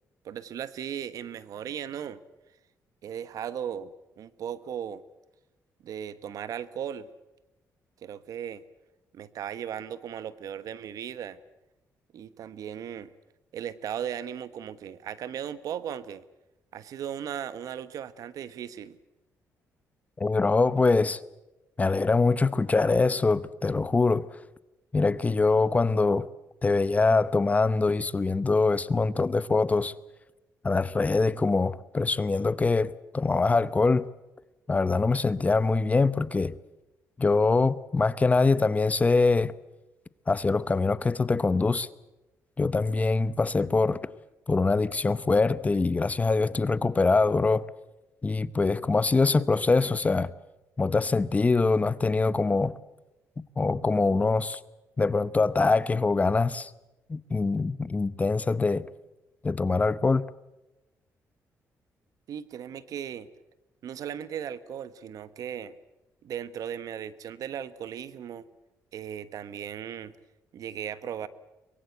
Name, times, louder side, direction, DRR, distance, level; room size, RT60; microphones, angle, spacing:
voice 1, 0.2-2.2 3.0-5.0 5.8-7.1 8.0-8.6 9.1-11.4 12.1-13.1 13.5-16.2 16.7-19.0 62.3-63.3 63.8-65.7 66.2-68.5 68.9-70.1 70.5-71.3, right 9 dB, 70° right, 1.1 m, -37 dB
voice 2, 20.2-21.2 21.8-24.2 24.9-26.3 26.6-29.9 30.6-34.0 34.7-36.5 37.2-39.5 40.3-41.9 42.6-44.0 44.5-47.6 48.2-50.3 50.8-52.7 53.6-54.6 55.0-56.7 57.1-58.8 59.4-60.2, left 3 dB, 25° left, 0.8 m, -24 dB
23.5 x 22.0 x 8.1 m
cardioid pair, 100°, 6 cm